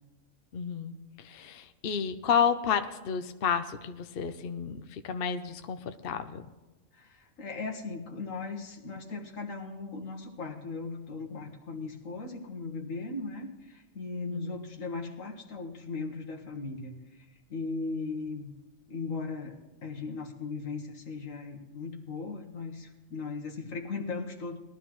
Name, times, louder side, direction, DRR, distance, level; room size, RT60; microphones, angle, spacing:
voice 1, 0.5-6.5 14.3-14.5, left 7 dB, 55° left, 9 dB, 0.8 m, -31 dB
voice 2, 6.9-18.5 18.9-24.6, left 4 dB, 75° left, 2 dB, 1.8 m, -38 dB
20.5 x 13.0 x 3.1 m, 1.1 s
omnidirectional pair, 1.4 m